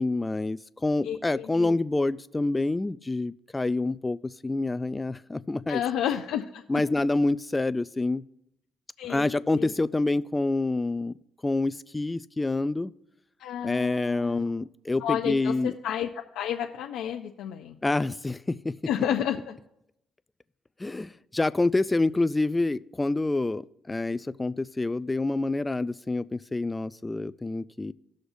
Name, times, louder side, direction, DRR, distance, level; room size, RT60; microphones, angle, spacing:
voice 1, 0.0-4.2 4.4-5.8 6.7-8.2 9.1-11.1 11.4-12.9 13.6-15.7 17.8-18.7 20.8-27.9, left 2 dB, 15° left, 15 dB, 0.4 m, -27 dB
voice 2, 1.0-1.7 5.7-6.8 9.0-9.7 13.4-14.5 15.0-17.8 18.9-19.6, left 10 dB, 90° left, 2 dB, 0.5 m, -31 dB
18.5 x 6.4 x 2.7 m, 0.82 s
cardioid pair, 90°, 0 cm